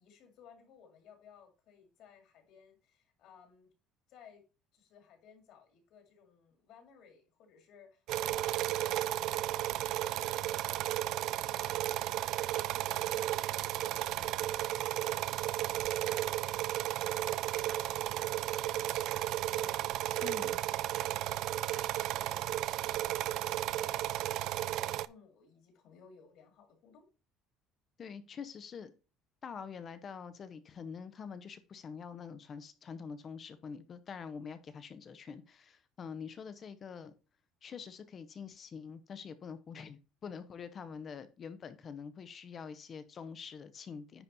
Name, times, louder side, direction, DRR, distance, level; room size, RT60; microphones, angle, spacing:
voice 1, 0.0-3.7 4.1-4.4 4.7-19.2 19.6-27.1, left 6 dB, 55° left, 2.1 m, -60 dB
sound 1, 8.1-25.1, right 14 dB, 55° right, 0.3 m, -34 dB
Gunshot gunfire, 16.1-16.4 17.1-17.4 17.7-18.5 19.1-19.5 20.2-20.5 21.0-21.3 21.7-22.3, right 2 dB, 10° right, 0.6 m, -56 dB
voice 2, 20.2-20.6 28.0-28.9 29.4-37.1 37.6-44.2, left 6 dB, 30° left, 0.7 m, -45 dB
9.9 x 4.1 x 4.2 m
cardioid pair, 175°, 0 cm